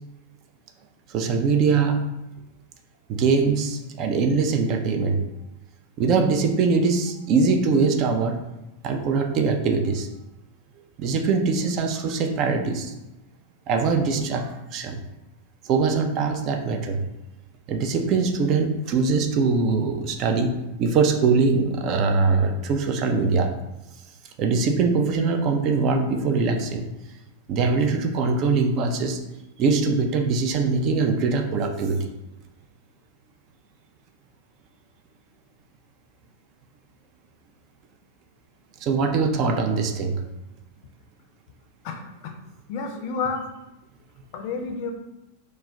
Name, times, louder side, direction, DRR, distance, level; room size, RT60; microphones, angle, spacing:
voice 1, 1.1-2.1 3.1-5.2 6.0-8.4 8.8-10.1 11.0-12.9 13.7-15.0 15.7-17.0 17.7-23.5 24.4-26.9 27.5-29.2 29.6-32.1 38.8-40.2, right 4 dB, 40° right, 5 dB, 0.3 m, -22 dB
voice 2, 41.8-42.3 42.7-43.5 44.3-44.9, left 4 dB, 45° left, 3 dB, 0.4 m, -30 dB
2.2 x 2.0 x 3.6 m, 0.96 s
figure-of-eight pair, 90°, 0 cm